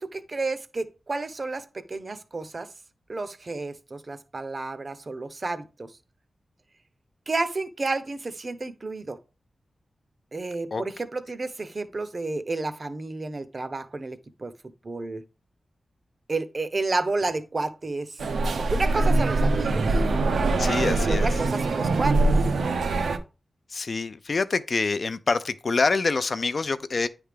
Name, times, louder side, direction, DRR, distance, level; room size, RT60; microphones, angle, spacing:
voice 1, 0.0-2.7 3.1-5.9 7.3-9.2 10.3-15.2 16.3-18.2 18.6-20.0 21.0-22.2, right 3 dB, 35° right, 0.6 m, -31 dB
sound 1, 18.2-23.2, right 2 dB, 90° right, 0.8 m, -23 dB
voice 2, 20.6-21.3 23.7-27.1, left 4 dB, 45° left, 0.5 m, -26 dB
9.7 x 3.4 x 5.0 m
wide cardioid pair, 180°, 0 cm